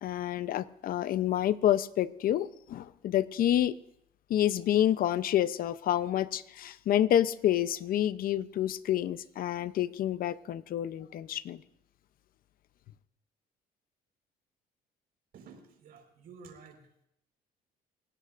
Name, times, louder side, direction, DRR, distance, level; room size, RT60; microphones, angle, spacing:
voice 1, 0.0-3.8 4.3-11.6, left 11 dB, 60° left, 0.7 m, -28 dB
voice 2, 15.3-17.1, right 5 dB, 65° right, 4.7 m, -52 dB
28.5 x 17.0 x 2.6 m
cardioid pair, 110°, 17 cm